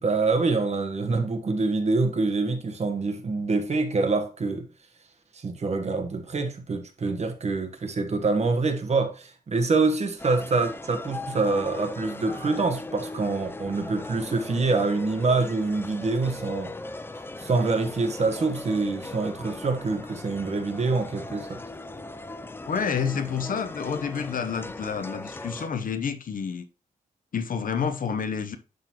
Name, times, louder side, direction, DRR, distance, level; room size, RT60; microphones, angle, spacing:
voice 1, 0.0-4.7 5.3-16.7 17.4-21.6, right 3 dB, 45° right, 1.2 m, -26 dB
sound 1, 10.2-25.7, left 2 dB, 15° left, 0.4 m, -39 dB
voice 2, 22.7-26.7 27.3-28.6, left 6 dB, 70° left, 0.8 m, -29 dB
11.5 x 3.9 x 3.0 m
wide cardioid pair, 170°, 15 cm